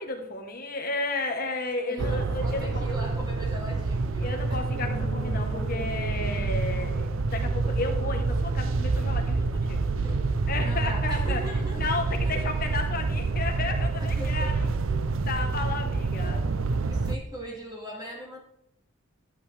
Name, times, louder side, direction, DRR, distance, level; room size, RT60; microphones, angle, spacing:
voice 1, 0.0-2.7 4.2-9.8 10.5-11.4 11.8-14.6 15.3-16.4, left 3 dB, 45° left, 4 dB, 1.1 m, -33 dB
voice 2, 1.9-4.6 10.0-10.3 10.6-12.0 12.2-12.4 14.0-14.7 15.5-16.4 16.7-18.4, right 1 dB, 20° right, -1 dB, 2.2 m, -40 dB
sound 1, 2.0-17.2, right 3 dB, 85° right, 0.5 m, -27 dB
sound 2, 4.6-8.4 8.7-8.8, equal, 15° left, 1.2 m, -43 dB
11.5 x 8.6 x 3.3 m, 0.75 s
head